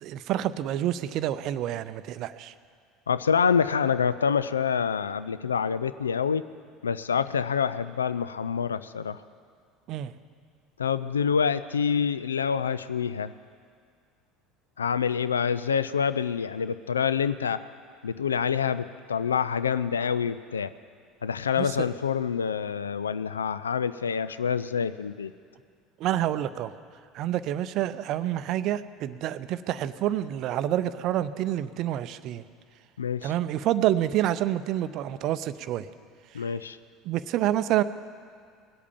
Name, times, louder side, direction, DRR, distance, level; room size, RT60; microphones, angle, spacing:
voice 1, 0.0-2.5 9.9-10.1 21.6-21.9 26.0-26.7 27.1-32.4 33.2-35.9 36.3-36.4 37.0-37.8, right 12 dB, 50° right, 14 dB, 0.5 m, -28 dB
voice 2, 3.1-6.4 6.8-9.2 10.8-13.3 14.8-17.6 18.0-20.7 21.2-25.3 33.0-33.3 36.3-36.8, left 7 dB, 80° left, 15 dB, 0.3 m, -26 dB
19.5 x 8.3 x 7.3 m, 2.1 s
figure-of-eight pair, 70°, 0 cm